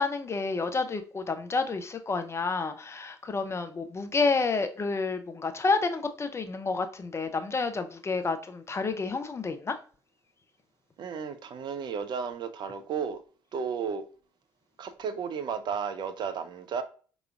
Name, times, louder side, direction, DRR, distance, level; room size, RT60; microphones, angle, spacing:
voice 1, 0.0-9.8, left 4 dB, 25° left, 0.6 m, -29 dB
voice 2, 11.0-13.2 13.5-14.0 14.8-16.8, right 6 dB, 45° right, 0.5 m, -33 dB
4.8 x 3.0 x 2.3 m
figure-of-eight pair, 50°, 10 cm